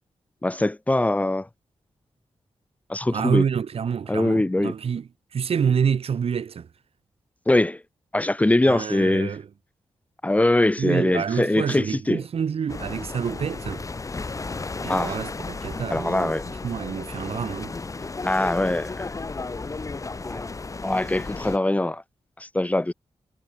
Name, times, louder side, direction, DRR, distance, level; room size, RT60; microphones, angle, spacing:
voice 1, 0.4-1.5 2.9-3.4 4.1-4.7 7.5-7.8 8.1-9.4 10.2-12.2 14.9-15.1 15.9-16.4 18.2-19.1 20.2-20.4 20.8-22.0 22.4-22.9, left 1 dB, 15° left, 1.5 m, -22 dB
voice 2, 3.1-6.7 8.6-9.5 10.8-13.8 14.8-16.3 16.6-17.7, right 7 dB, 70° right, 3.6 m, -27 dB
sound 1, 12.7-21.6, left 3 dB, 30° left, 6.5 m, -34 dB
wide cardioid pair, 120°, 11 cm